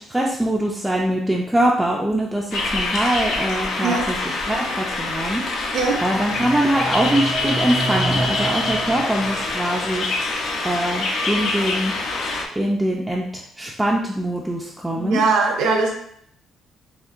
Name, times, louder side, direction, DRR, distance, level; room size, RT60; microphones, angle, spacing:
voice 1, 0.0-10.1 10.6-11.9 12.6-15.2, right 1 dB, 5° right, -2 dB, 0.3 m, -23 dB
sound 1, 2.5-12.4, left 2 dB, 65° left, 0.6 m, -25 dB
sound 2, 6.2-10.0, right 2 dB, 20° left, 0.7 m, -29 dB
voice 2, 15.0-15.9, right 4 dB, 80° right, 0 dB, 0.6 m, -20 dB
4.3 x 3.1 x 2.4 m, 0.68 s
cardioid pair, 165°, 0 cm